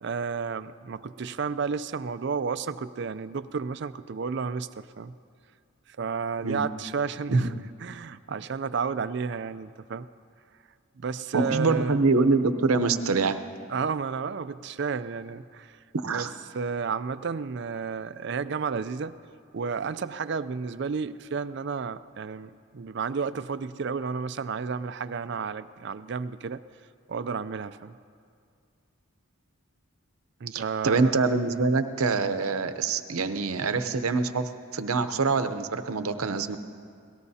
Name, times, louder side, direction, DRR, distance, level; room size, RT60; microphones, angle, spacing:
voice 1, 0.0-5.1 5.9-7.5 7.8-10.1 11.0-12.0 13.7-15.8 16.1-16.3 16.5-19.2 19.5-26.6 27.1-27.9 30.4-31.2, right 5 dB, 50° right, 14 dB, 0.4 m, -32 dB
voice 2, 11.3-13.4 15.9-16.3 30.5-36.6, right 4 dB, 85° right, 10 dB, 0.8 m, -25 dB
26.5 x 18.5 x 2.8 m, 2.3 s
head